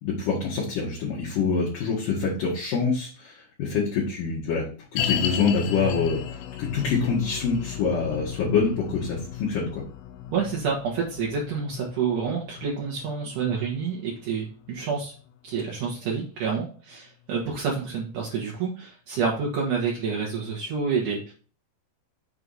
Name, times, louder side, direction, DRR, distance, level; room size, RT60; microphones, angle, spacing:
voice 1, 0.0-4.7 4.9-9.8, left 5 dB, 60° left, -4 dB, 2.5 m, -26 dB
sound 1, 5.0-16.3 16.5-16.6 17.3-17.4, left 10 dB, 80° left, 3.0 m, -35 dB
voice 2, 10.3-15.1 15.4-21.3, right 5 dB, 75° right, -3 dB, 1.8 m, -28 dB
7.5 x 4.8 x 4.1 m, 0.38 s
omnidirectional pair, 5.9 m